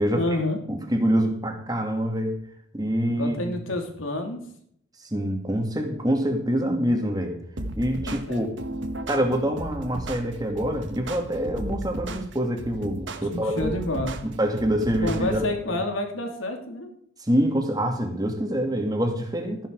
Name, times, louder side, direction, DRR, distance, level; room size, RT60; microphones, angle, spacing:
voice 1, 0.1-0.6 3.1-4.4 8.0-8.4 13.2-14.2 15.0-16.9, left 1 dB, 85° left, 4 dB, 3.0 m, -29 dB
voice 2, 0.7-2.4 2.7-3.5 5.0-7.4 7.8-8.5 9.1-13.7 14.0-15.5 17.2-19.7, equal, 20° right, 4 dB, 2.2 m, -25 dB
sound 1, 7.6-15.5, right 1 dB, 65° right, 1.4 m, -35 dB
14.5 x 10.5 x 4.8 m, 0.67 s
head